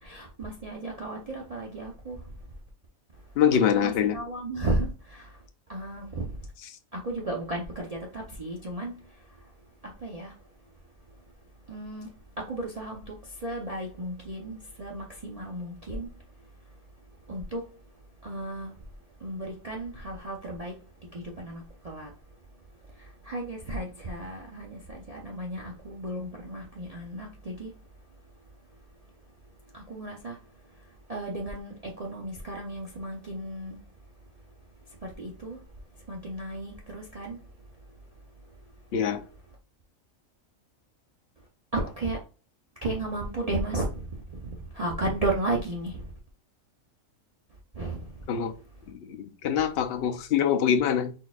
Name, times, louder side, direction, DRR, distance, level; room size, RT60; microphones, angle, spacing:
voice 1, 0.0-2.5 3.1-3.4 3.7-6.5 6.9-10.8 11.1-11.2 11.6-17.9 18.2-38.9 41.4-41.5 41.7-42.2 42.8-46.1 47.7-48.3, right 2 dB, 35° right, 0.6 m, -35 dB
voice 2, 3.4-4.2 38.9-39.2 48.3-48.5 48.9-51.1, left 8 dB, 60° left, 0.7 m, -24 dB
4.1 x 4.1 x 2.4 m
omnidirectional pair, 1.4 m